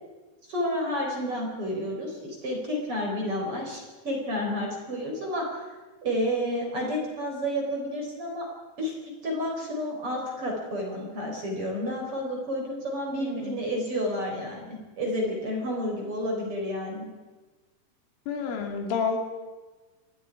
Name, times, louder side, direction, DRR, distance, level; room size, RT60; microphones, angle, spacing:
voice 1, 0.5-5.7 6.0-8.4 8.8-8.9 9.2-17.1, equal, 30° right, 0 dB, 4.9 m, -30 dB
voice 2, 13.2-13.6 18.3-19.2, left 6 dB, 80° left, 2 dB, 5.2 m, -29 dB
28.0 x 20.0 x 4.8 m, 1.2 s
omnidirectional pair, 5.7 m